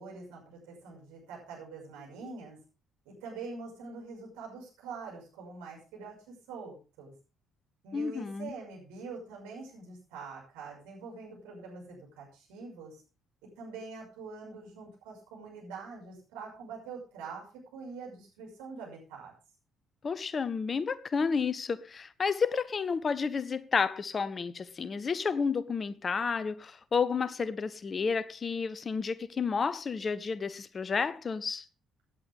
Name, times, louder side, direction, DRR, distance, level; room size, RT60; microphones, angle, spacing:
voice 1, 0.0-2.6 3.0-7.1 7.8-13.0 13.6-19.3, right 4 dB, 70° right, 6.3 m, -44 dB
voice 2, 7.9-8.5 20.0-31.6, left 5 dB, 35° left, 0.8 m, -31 dB
17.0 x 9.9 x 3.7 m
figure-of-eight pair, 45°, 0 cm